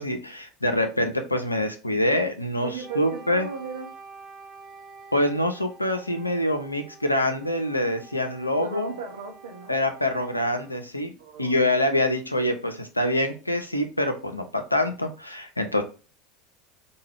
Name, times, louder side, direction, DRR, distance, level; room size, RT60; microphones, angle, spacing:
voice 1, 0.0-3.5 5.1-8.9 9.7-11.1 11.4-15.8, left 1 dB, 90° left, 6 dB, 0.5 m, -25 dB
voice 2, 2.6-3.9 8.5-9.8 11.2-11.7, right 5 dB, 75° right, 2 dB, 0.7 m, -37 dB
Wind instrument woodwind instrument, 2.8-10.8, right 4 dB, 30° right, 1.0 m, -47 dB
4.5 x 2.3 x 3.3 m, 0.33 s
figure-of-eight pair, 75°, 0 cm